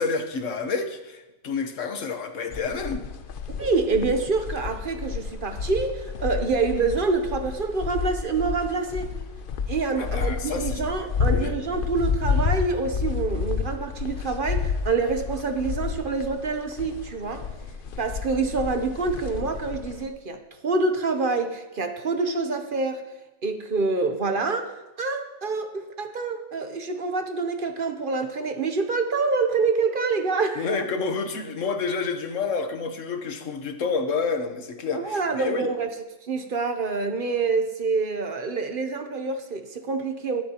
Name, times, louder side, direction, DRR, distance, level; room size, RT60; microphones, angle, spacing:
voice 1, 0.0-3.0 10.0-10.8 11.3-11.5 30.6-35.7, left 4 dB, 80° left, 6 dB, 1.4 m, -29 dB
sound 1, 2.5-20.1, left 6 dB, 50° left, 0.7 m, -30 dB
voice 2, 3.6-9.1 9.7-17.5 18.0-23.0 23.4-30.7 34.9-35.9 36.3-40.4, right 4 dB, 50° right, 6 dB, 0.9 m, -26 dB
21.5 x 7.5 x 2.9 m, 1.1 s
omnidirectional pair, 1.3 m